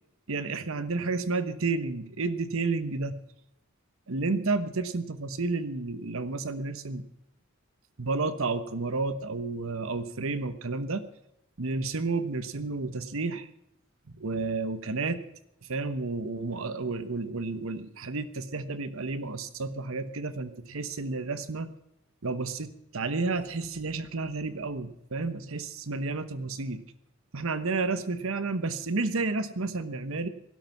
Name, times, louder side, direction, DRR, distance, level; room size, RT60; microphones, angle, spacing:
voice 1, 0.3-3.2 4.1-7.0 8.0-11.0 11.6-13.5 14.1-15.2 15.7-21.7 22.2-26.8 27.3-30.3, right 3 dB, 65° right, 12 dB, 1.1 m, -31 dB
17.5 x 12.0 x 5.9 m, 0.80 s
head